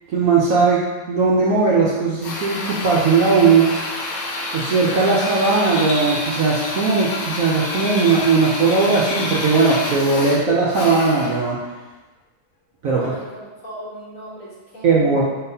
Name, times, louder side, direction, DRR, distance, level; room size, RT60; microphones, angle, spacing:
voice 1, 0.1-0.8 1.1-3.7 4.5-11.6 12.8-13.0 14.8-15.2, right 4 dB, 65° right, -5 dB, 0.9 m, -18 dB
Drill, 2.2-11.5, left 2 dB, 85° left, 1.4 m, -28 dB
voice 2, 12.9-15.2, right 1 dB, 50° left, -7 dB, 1.4 m, -37 dB
4.2 x 3.8 x 2.7 m, 1.2 s
omnidirectional pair, 1.9 m